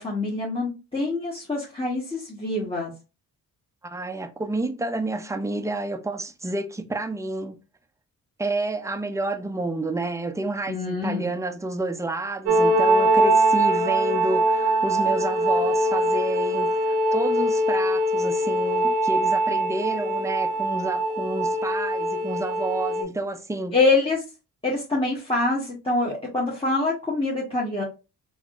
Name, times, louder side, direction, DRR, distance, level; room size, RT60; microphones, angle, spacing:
voice 1, 0.0-2.9 10.7-11.3 23.7-24.2 24.6-27.8, left 3 dB, 15° left, 1.1 m, -25 dB
voice 2, 3.8-7.6 8.4-16.8 17.1-23.8, right 2 dB, 10° right, 0.5 m, -30 dB
sound 1, 12.5-23.0, right 1 dB, 75° right, 0.7 m, -22 dB
3.4 x 2.6 x 2.4 m
supercardioid pair, 50°, 39 cm